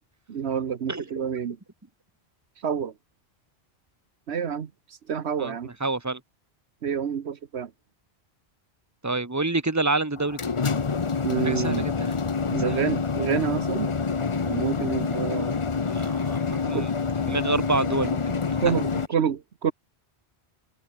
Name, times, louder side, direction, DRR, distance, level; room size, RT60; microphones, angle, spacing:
voice 1, 0.3-1.6 2.6-2.9 4.3-5.7 6.8-7.7 11.2-11.8 12.5-14.0 14.3-15.6 16.7-16.9 18.6-19.7, right 7 dB, 80° right, 1.3 m, -28 dB
voice 2, 5.8-6.2 9.0-10.4 11.4-12.1 12.6-12.8 15.8-16.9 17.2-18.5, right 3 dB, 15° right, 1.6 m, -28 dB
sound 1, 10.2-19.1, left 5 dB, 30° left, 0.8 m, -27 dB
open air
omnidirectional pair, 1.1 m